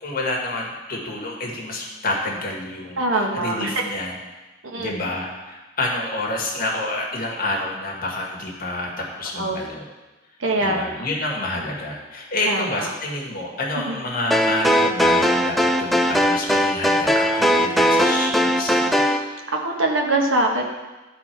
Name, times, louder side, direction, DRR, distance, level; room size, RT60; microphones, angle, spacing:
voice 1, 0.0-4.2 4.8-9.8 10.6-19.1, left 2 dB, 50° left, -2 dB, 1.5 m, -28 dB
voice 2, 3.0-3.7 4.6-4.9 9.4-9.6 10.4-10.9 12.5-12.9 13.9-14.0 19.5-20.6, right 2 dB, 80° right, 1 dB, 1.1 m, -23 dB
sound 1, 14.3-19.2, equal, ahead, 0.3 m, -19 dB
11.5 x 4.1 x 4.4 m, 1.1 s
head